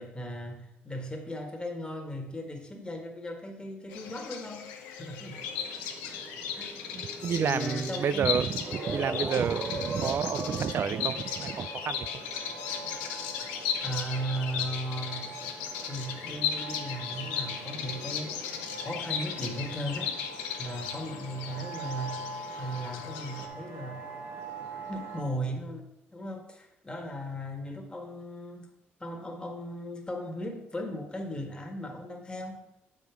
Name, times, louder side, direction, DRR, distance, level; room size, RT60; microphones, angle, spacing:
voice 1, 0.0-5.4 6.5-6.7 7.4-8.6 13.8-15.2 15.8-20.1 20.6-22.2 22.6-24.0 24.6-25.8 26.1-28.7 29.0-32.6, equal, 20° left, 3 dB, 1.6 m, -37 dB
Bird vocalization bird call bird song, 3.9-23.5, left 7 dB, 90° left, 0.7 m, -36 dB
sound 1, 5.3-25.2, right 2 dB, 65° right, 1.7 m, -41 dB
voice 2, 6.9-12.1, right 7 dB, 50° right, 17 dB, 0.4 m, -30 dB
7.4 x 5.3 x 4.6 m, 0.92 s
supercardioid pair, 60°, 5 cm